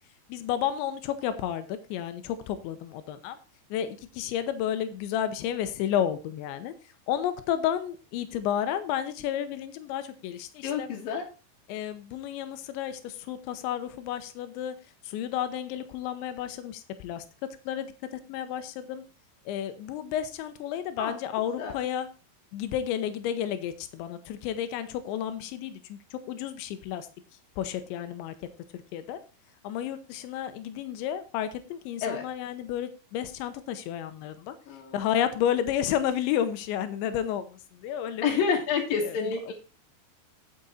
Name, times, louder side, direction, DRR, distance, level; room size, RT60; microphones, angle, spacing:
voice 1, 0.3-3.4 3.7-6.7 7.1-10.9 11.7-14.7 15.0-17.2 17.7-19.0 19.5-22.1 22.5-27.1 27.6-28.3 28.7-29.2 29.6-34.5 34.9-38.2 39.0-39.2, left 10 dB, 90° left, 11 dB, 3.2 m, -31 dB
voice 2, 10.6-11.2 21.0-21.2 21.6-21.7 32.0-32.3 34.7-35.0 38.2-39.5, left 6 dB, 60° left, -1 dB, 3.0 m, -28 dB
9.5 x 7.9 x 4.1 m, 0.33 s
omnidirectional pair, 5.0 m